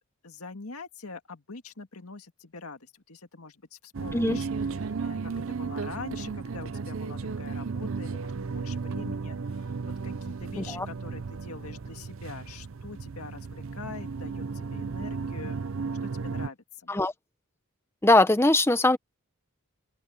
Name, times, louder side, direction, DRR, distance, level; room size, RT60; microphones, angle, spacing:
voice 1, 0.2-4.5 4.8-15.6 16.0-16.9, left 3 dB, 75° left, 2.0 m, -44 dB
sound 1, 3.9-16.5, right 4 dB, 60° right, 0.6 m, -34 dB
voice 2, 18.0-19.0, left 2 dB, 10° left, 0.8 m, -21 dB
open air
head